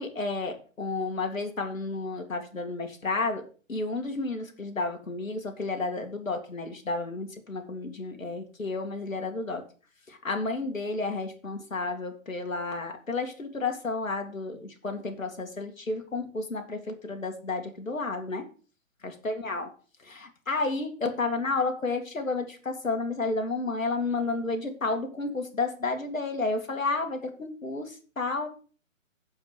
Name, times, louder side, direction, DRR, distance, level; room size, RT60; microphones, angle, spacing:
voice 1, 0.0-3.4 3.7-9.6 10.1-18.5 19.0-19.7 20.0-28.5, left 3 dB, 75° left, 5 dB, 2.3 m, -31 dB
7.5 x 7.3 x 6.9 m, 0.39 s
figure-of-eight pair, 135°, 40 cm